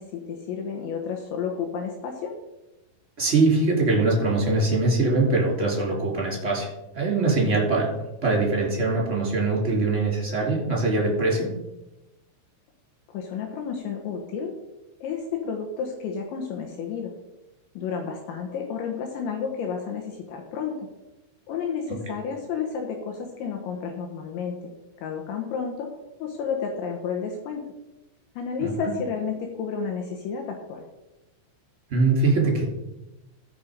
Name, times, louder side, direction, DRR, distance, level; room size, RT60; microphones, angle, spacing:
voice 1, 0.0-2.3 13.1-14.5 15.0-17.1 17.7-20.9 21.5-24.7 25.0-25.9 26.2-27.6 28.4-30.8, left 6 dB, 75° left, 2 dB, 3.1 m, -31 dB
voice 2, 3.2-7.9 8.2-11.5 21.9-22.0 28.6-28.7 31.9-32.6, right 3 dB, 15° right, -2 dB, 2.8 m, -22 dB
15.0 x 6.2 x 5.1 m, 0.99 s
omnidirectional pair, 5.9 m